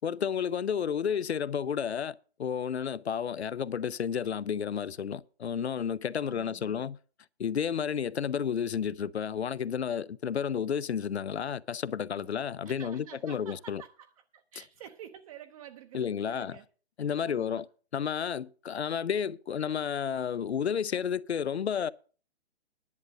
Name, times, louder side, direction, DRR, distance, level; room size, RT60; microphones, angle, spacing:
voice 1, 0.0-7.0 7.4-13.8 15.9-16.6 17.0-17.7 17.9-21.9, left 7 dB, 85° left, 0.6 m, -31 dB
voice 2, 6.2-6.9 12.1-12.3 12.6-16.7 17.2-17.6, right 9 dB, 35° right, 0.8 m, -50 dB
10.5 x 8.2 x 6.4 m
hypercardioid pair, 140°, 32 cm